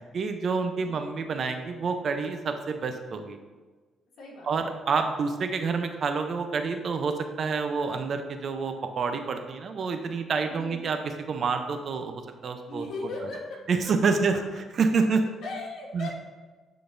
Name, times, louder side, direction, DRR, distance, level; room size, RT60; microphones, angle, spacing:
voice 1, 0.1-3.4 4.4-11.0 11.3-12.9 13.7-14.4 14.8-15.3 15.9-16.1, right 4 dB, 55° right, 7 dB, 0.6 m, -28 dB
voice 2, 0.8-1.2 4.2-4.5 10.5-10.8 12.7-14.1 15.4-16.2, left 2 dB, 70° left, -3 dB, 1.7 m, -38 dB
10.0 x 3.9 x 2.6 m, 1.3 s
cardioid pair, 90°, 0 cm